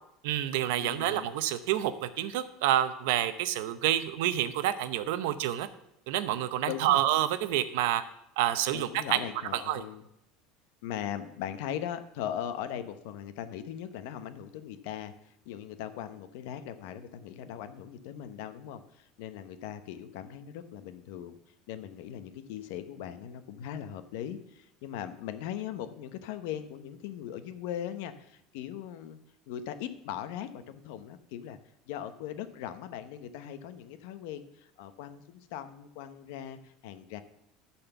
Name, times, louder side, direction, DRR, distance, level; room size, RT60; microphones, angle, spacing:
voice 1, 0.2-5.7 6.1-8.0 8.4-9.2 9.5-9.8, right 12 dB, 75° right, 12 dB, 0.7 m, -28 dB
voice 2, 0.8-1.3 6.6-7.0 8.7-10.0 10.8-21.4 21.7-29.2 29.5-31.6 31.9-37.2, left 10 dB, 70° left, 11 dB, 0.8 m, -39 dB
12.5 x 4.3 x 6.9 m, 0.79 s
cardioid pair, 165°, 0 cm